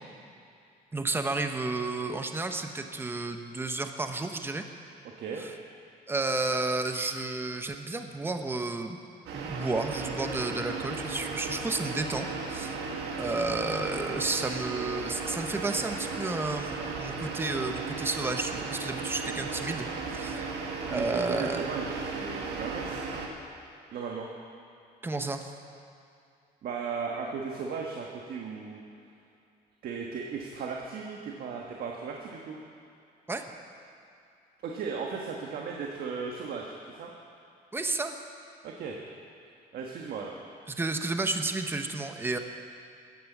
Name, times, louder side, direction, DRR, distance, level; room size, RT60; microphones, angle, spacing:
voice 1, 0.9-4.6 5.4-5.5 6.1-9.0 9.3-12.8 13.2-20.5 20.9-21.6 25.0-25.5 33.3-33.4 37.7-38.2 40.7-42.4, right 3 dB, 15° right, 6 dB, 1.0 m, -32 dB
voice 2, 5.0-5.4 20.9-23.0 23.9-24.3 26.6-28.8 29.8-32.6 34.6-37.1 38.6-39.0 39.7-40.3, right 5 dB, 65° right, 0 dB, 1.5 m, -36 dB
sound 1, 9.3-23.3, right 4 dB, 85° right, 1.9 m, -35 dB
15.0 x 10.0 x 7.3 m, 2.5 s
cardioid pair, 110°, 17 cm